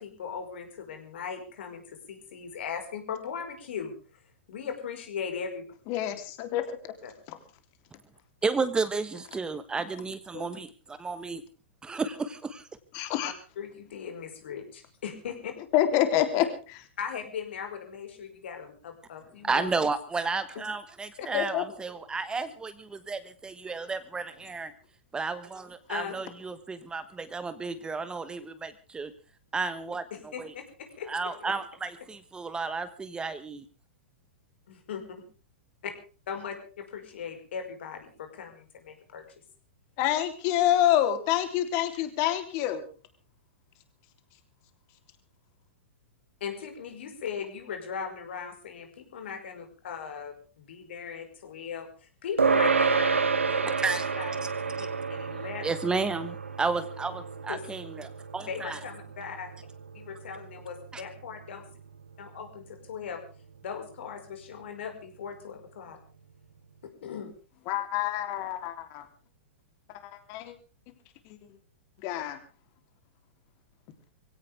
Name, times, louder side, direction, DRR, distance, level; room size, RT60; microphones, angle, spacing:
voice 1, 0.0-3.9 4.5-5.7 7.0-7.1 13.2-13.3 13.6-15.5 17.0-19.7 21.2-21.3 25.9-26.2 30.1-31.5 34.7-35.0 36.3-39.2 46.4-53.2 53.5-54.5 54.8-55.7 57.5-57.6 58.5-59.5 59.9-61.7 62.2-63.2 63.6-66.0 66.8-67.3, left 7 dB, 65° left, 5 dB, 5.2 m, -38 dB
voice 2, 5.9-6.8 7.3-7.4 10.3-10.4 12.9-13.3 15.7-16.4 21.3-21.6 40.0-42.8 67.7-69.1 70.0-70.5 71.2-71.4 72.0-72.4, left 12 dB, 45° left, 8 dB, 3.4 m, -27 dB
voice 3, 8.4-11.4 11.8-12.7 19.4-24.7 25.1-29.1 29.5-30.5 31.1-33.6 53.8-54.1 54.4-54.5 54.8-54.9 55.6-58.8 60.9-61.0, right 4 dB, 10° right, 12 dB, 1.2 m, -32 dB
sound 1, 52.4-62.1, right 5 dB, 90° right, 1.1 m, -30 dB
23.0 x 16.5 x 3.6 m, 0.36 s
hypercardioid pair, 110°, 7 cm